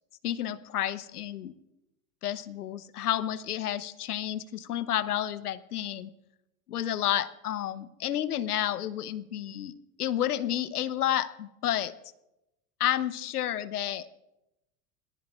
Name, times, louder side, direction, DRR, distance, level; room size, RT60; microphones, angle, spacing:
voice 1, 0.2-1.6 2.2-6.1 6.7-9.7 10.0-11.9 12.8-14.1, left 11 dB, 80° left, 16 dB, 0.9 m, -30 dB
27.0 x 19.0 x 2.4 m, 0.91 s
hypercardioid pair, 85°, 45 cm